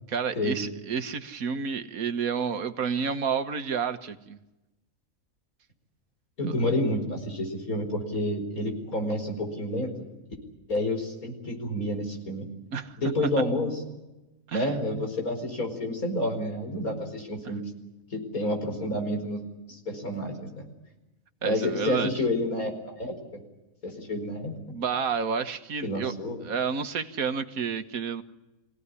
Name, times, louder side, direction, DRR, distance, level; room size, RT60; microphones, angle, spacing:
voice 1, 0.1-4.4 12.7-13.0 14.5-14.8 21.4-22.1 24.7-26.1 26.4-28.2, right 6 dB, 85° right, 9 dB, 1.7 m, -30 dB
voice 2, 6.4-9.9 10.7-12.5 13.0-13.7 14.5-17.6 18.1-19.4 19.7-20.7 21.4-23.4 23.8-24.5 25.8-26.4, left 1 dB, 85° left, 3 dB, 5.3 m, -29 dB
25.0 x 17.5 x 9.7 m, 1.0 s
omnidirectional pair, 1.5 m